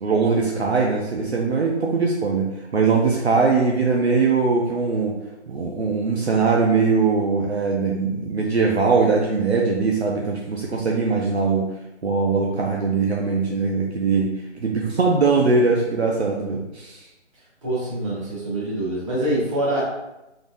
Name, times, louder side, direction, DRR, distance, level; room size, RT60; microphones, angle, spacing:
voice 1, 0.0-5.2 5.5-11.7 12.0-14.3 14.6-17.1, right 4 dB, 60° right, -1 dB, 0.7 m, -21 dB
voice 2, 17.6-19.8, right 1 dB, 25° right, -8 dB, 1.5 m, -25 dB
3.9 x 3.5 x 2.6 m, 0.94 s
hypercardioid pair, 170°, 36 cm